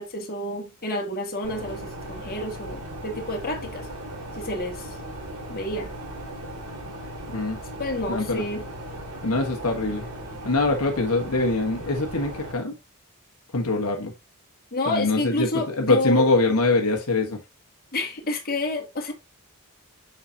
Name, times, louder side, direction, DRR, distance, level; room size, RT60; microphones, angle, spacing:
voice 1, 0.0-3.9 4.3-5.0 5.5-5.9 7.8-8.6 14.7-16.3 17.9-19.1, left 2 dB, 45° left, 1.9 m, -29 dB
sound 1, 1.4-12.5, right 1 dB, 85° right, 2.7 m, -37 dB
voice 2, 8.1-8.4 9.2-10.1 10.4-12.7 13.5-14.1 14.9-17.4, left 2 dB, 75° left, 1.5 m, -23 dB
7.2 x 6.0 x 2.8 m
head